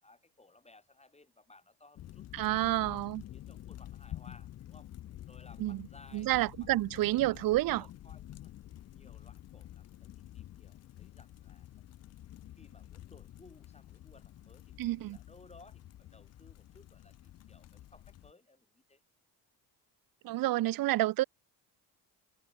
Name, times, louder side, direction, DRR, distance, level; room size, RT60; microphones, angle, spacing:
voice 1, 0.0-3.0 3.3-4.9 5.3-8.5 8.9-11.8 12.6-19.0, left 2 dB, 15° left, 3.4 m, -60 dB
sound 1, 2.0-18.3, left 13 dB, 35° left, 0.5 m, -49 dB
voice 2, 2.3-3.2 5.6-5.8 6.1-7.8 14.8-15.2 20.2-21.2, right 16 dB, 45° right, 0.6 m, -29 dB
hypercardioid pair, 60°, 49 cm